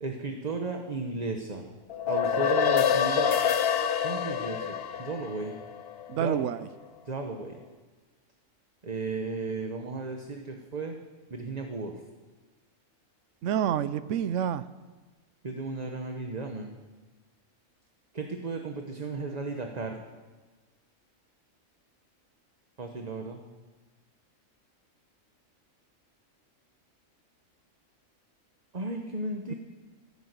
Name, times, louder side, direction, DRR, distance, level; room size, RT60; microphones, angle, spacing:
voice 1, 0.0-1.7 2.0-3.3 4.0-5.5 6.1-6.5 7.0-7.6 8.8-10.9 11.3-12.0 15.4-16.8 18.1-20.0 22.8-23.4 28.7-29.5, right 3 dB, 30° right, 3 dB, 1.1 m, -34 dB
sound 1, 1.9-6.5, left 8 dB, 55° left, 0.8 m, -27 dB
voice 2, 6.1-6.7 13.4-14.6 29.5-29.6, right 9 dB, 65° right, 15 dB, 1.0 m, -28 dB
14.0 x 12.5 x 8.2 m, 1.3 s
omnidirectional pair, 1.4 m